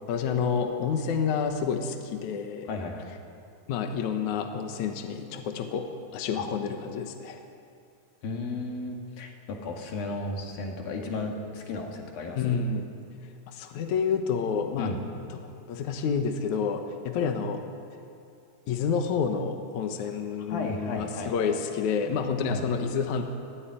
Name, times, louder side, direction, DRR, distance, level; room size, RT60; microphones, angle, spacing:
voice 1, 0.1-2.7 3.7-5.9 6.1-7.4 12.4-12.9 13.5-14.9 15.3-15.4 15.7-17.6 18.7-23.2, left 6 dB, 65° left, 5 dB, 2.4 m, -29 dB
voice 2, 2.7-3.1 6.3-6.5 8.2-12.6 14.8-15.0 20.5-21.8 22.5-22.6, left 2 dB, 80° left, 1 dB, 4.0 m, -34 dB
21.0 x 14.5 x 9.1 m, 2.4 s
omnidirectional pair, 4.1 m